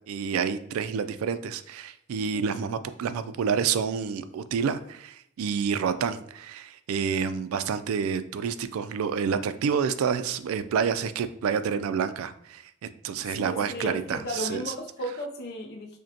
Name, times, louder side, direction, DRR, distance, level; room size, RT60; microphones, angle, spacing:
voice 1, 0.1-14.7, right 6 dB, 85° right, 0.3 m, -28 dB
voice 2, 2.3-2.6 13.3-16.0, equal, 50° left, 0.4 m, -35 dB
5.0 x 2.1 x 2.7 m
head